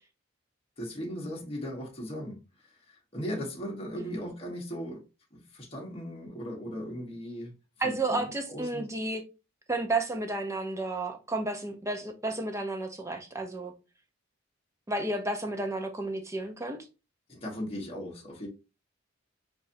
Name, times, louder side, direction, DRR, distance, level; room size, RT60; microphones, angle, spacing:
voice 1, 0.8-5.0 5.3-7.5 7.8-8.9 17.3-18.5, equal, 30° left, 1.4 m, -38 dB
voice 2, 7.8-9.2 9.7-13.7 14.9-16.8, right 2 dB, 15° right, 0.8 m, -32 dB
6.8 x 2.6 x 2.7 m
head